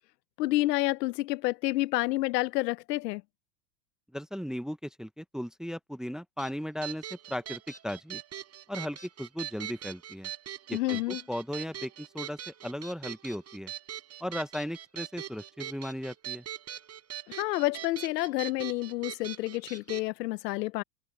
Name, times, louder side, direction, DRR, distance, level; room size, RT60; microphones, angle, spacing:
voice 1, 0.4-3.2 10.7-11.2 17.3-20.8, left 18 dB, 85° left, 0.9 m, -29 dB
voice 2, 4.1-8.2 8.7-10.3 10.7-13.7 14.2-16.4, equal, ahead, 0.7 m, -37 dB
sound 1, 6.4-20.1, right 10 dB, 30° right, 4.9 m, -42 dB
supercardioid pair, 125°, 48 cm